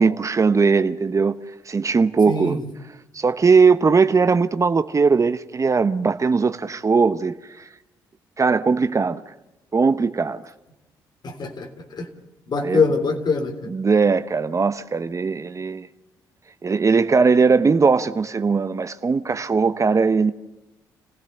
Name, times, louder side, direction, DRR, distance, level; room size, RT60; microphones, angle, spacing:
voice 1, 0.0-1.3 1.7-2.6 3.1-7.7 8.4-9.2 9.7-10.4 12.6-12.8 13.7-15.9 16.6-20.3, right 4 dB, 35° right, 1.0 m, -19 dB
voice 2, 2.3-2.6 11.2-12.1 12.5-13.5, left 4 dB, 50° left, 3.4 m, -23 dB
29.0 x 16.5 x 6.7 m
hypercardioid pair, 50°, 9 cm